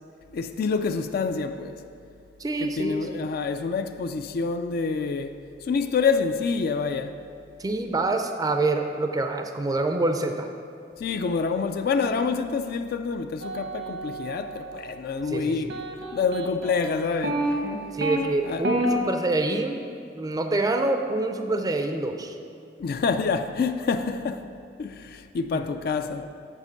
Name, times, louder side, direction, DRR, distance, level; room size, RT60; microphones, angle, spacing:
voice 1, 0.3-1.8 2.6-7.2 11.0-15.7 16.1-17.5 18.4-18.7 22.8-24.5 24.8-26.3, left 5 dB, 55° left, 0.3 m, -27 dB
voice 2, 2.4-3.1 7.6-10.5 15.3-15.7 17.9-19.8 20.1-22.3 25.5-25.6, right 2 dB, 20° right, 0.4 m, -26 dB
sound 1, 13.4-15.0 15.7-18.2 18.6-18.9, right 2 dB, 85° right, 1.0 m, -30 dB
7.4 x 4.4 x 6.6 m
head